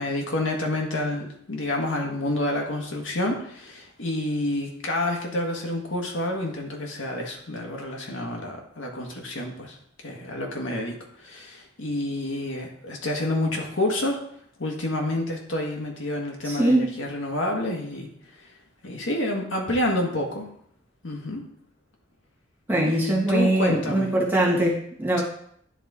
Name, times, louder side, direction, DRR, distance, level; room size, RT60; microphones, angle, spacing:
voice 1, 0.0-9.8 10.0-10.9 11.2-14.2 14.6-18.1 18.8-20.5 21.0-21.4 22.8-24.1, left 1 dB, 90° left, 1 dB, 1.5 m, -28 dB
voice 2, 16.4-17.0 22.7-25.2, right 1 dB, 10° right, -4 dB, 1.6 m, -22 dB
10.0 x 4.2 x 3.6 m, 0.66 s
head